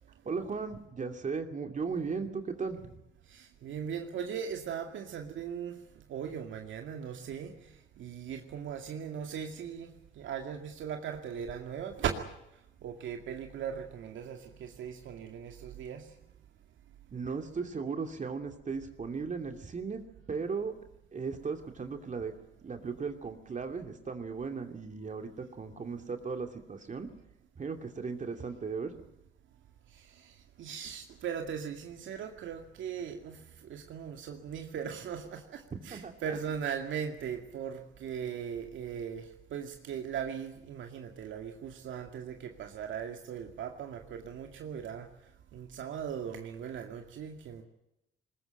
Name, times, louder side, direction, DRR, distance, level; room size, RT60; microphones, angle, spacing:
voice 1, 0.2-2.9 17.1-20.0 20.3-20.7 21.1-22.3 22.6-27.1 27.6-28.9 35.9-36.5, right 5 dB, 40° right, 2.7 m, -36 dB
voice 2, 3.3-5.7 6.1-7.5 8.0-9.9 10.2-12.3 12.8-16.0 30.6-33.4 33.7-39.2 39.5-45.1 45.5-47.6, right 8 dB, 75° right, 2.3 m, -38 dB
21.0 x 20.5 x 9.1 m
cardioid pair, 90°, 20 cm